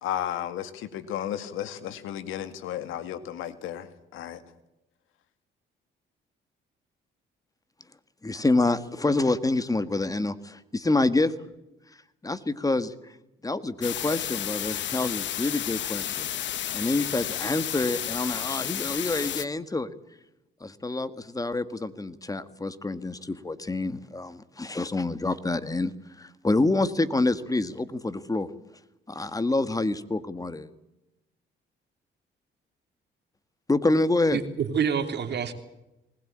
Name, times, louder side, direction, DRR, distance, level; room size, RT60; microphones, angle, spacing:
voice 1, 0.0-4.4, left 11 dB, 90° left, 11 dB, 2.1 m, -34 dB
voice 2, 8.2-11.3 12.2-13.2 13.4-16.5 16.7-19.9 20.6-28.5 29.1-30.7 33.7-34.4, left 2 dB, 15° left, 13 dB, 1.7 m, -27 dB
sound 1, 13.8-19.5, left 11 dB, 65° left, 1.1 m, -32 dB
voice 3, 34.3-35.5, right 7 dB, 60° right, 8 dB, 3.0 m, -27 dB
20.0 x 20.0 x 8.8 m, 0.93 s
cardioid pair, 90°, 20 cm